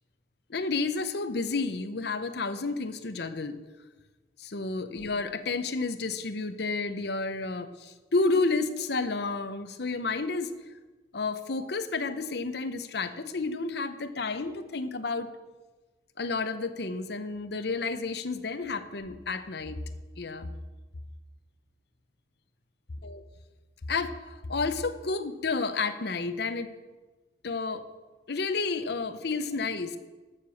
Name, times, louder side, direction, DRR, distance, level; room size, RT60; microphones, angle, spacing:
voice 1, 0.5-3.6 4.4-10.5 11.1-15.3 16.2-19.8 20.2-20.6 23.0-23.2 23.9-26.7 27.4-27.8 28.3-30.0, left 3 dB, 65° left, 10 dB, 0.8 m, -31 dB
12.5 x 6.8 x 7.1 m, 1.3 s
head